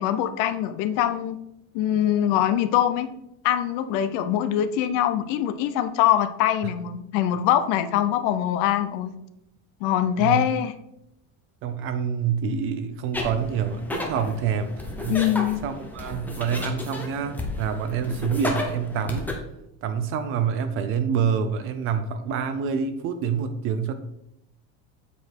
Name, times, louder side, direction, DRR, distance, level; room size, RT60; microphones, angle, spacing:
voice 1, 0.0-1.4 1.7-3.1 3.4-9.1 9.8-10.7 15.1-15.6, left 11 dB, 50° left, 12 dB, 0.6 m, -23 dB
voice 2, 11.6-14.7 15.0-15.3 15.6-19.3 19.8-23.9, right 7 dB, 35° right, 10 dB, 0.4 m, -27 dB
sound 1, 13.1-19.3, left 2 dB, 5° left, 0.7 m, -33 dB
7.9 x 4.8 x 4.5 m, 0.83 s
cardioid pair, 175°, 39 cm